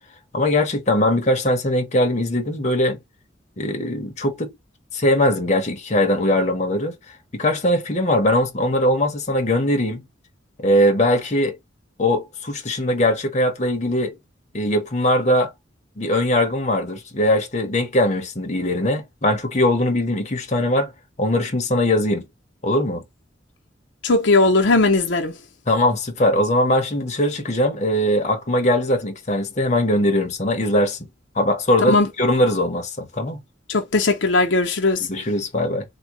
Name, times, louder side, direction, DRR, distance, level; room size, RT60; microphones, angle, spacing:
voice 1, 0.3-3.0 3.6-4.5 4.9-7.0 7.3-10.0 10.6-11.6 12.0-14.2 14.5-15.5 16.0-20.9 21.2-22.2 22.6-23.0 25.7-31.0 31.4-33.4 35.0-35.8, left 1 dB, 35° left, 0.9 m, -20 dB
voice 2, 24.0-25.3 31.9-32.1 33.7-35.1, left 3 dB, 80° left, 0.7 m, -18 dB
3.5 x 2.2 x 2.9 m
head